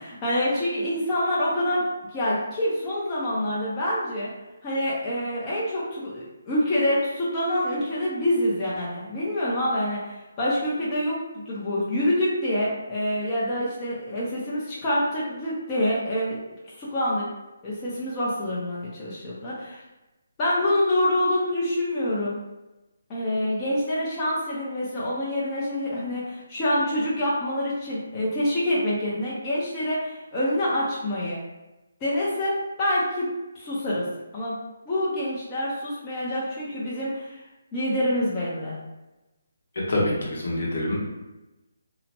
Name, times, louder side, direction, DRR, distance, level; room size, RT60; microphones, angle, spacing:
voice 1, 0.0-4.3 4.6-16.4 16.8-17.2 17.6-19.8 20.4-22.4 23.1-31.4 32.0-33.3 33.5-34.0 34.3-34.6 34.9-37.4 37.7-38.8, left 1 dB, 20° left, -8 dB, 0.6 m, -26 dB
voice 2, 39.9-40.9, left 1 dB, 65° left, -4 dB, 0.9 m, -25 dB
2.8 x 2.1 x 2.8 m, 1.0 s
figure-of-eight pair, 155°, 0 cm